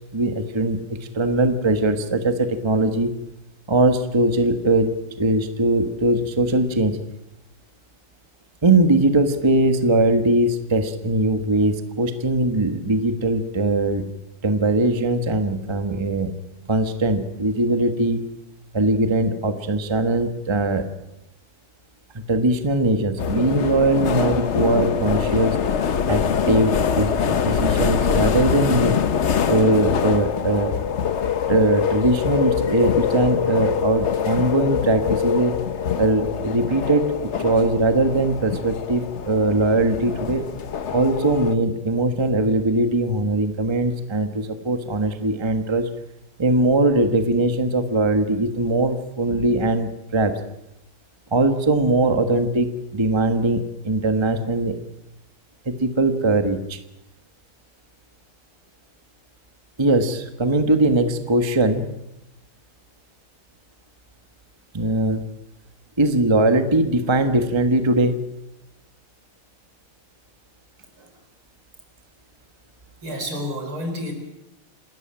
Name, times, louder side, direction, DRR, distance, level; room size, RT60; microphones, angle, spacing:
voice 1, 0.1-3.1 3.7-7.0 8.6-14.0 14.4-16.3 16.7-18.3 18.7-20.8 22.1-25.6 26.1-29.0 29.5-30.7 31.5-35.5 36.0-40.5 40.9-45.9 46.4-50.3 51.3-54.8 55.6-56.8 59.8-61.9 64.7-65.2 66.0-68.2, right 2 dB, 15° right, 7 dB, 1.2 m, -21 dB
sound 1, 23.2-41.6, left 7 dB, 55° left, 0.8 m, -24 dB
voice 2, 73.0-74.1, equal, 70° right, 5 dB, 5.3 m, -30 dB
28.5 x 13.0 x 8.9 m, 0.89 s
omnidirectional pair, 2.4 m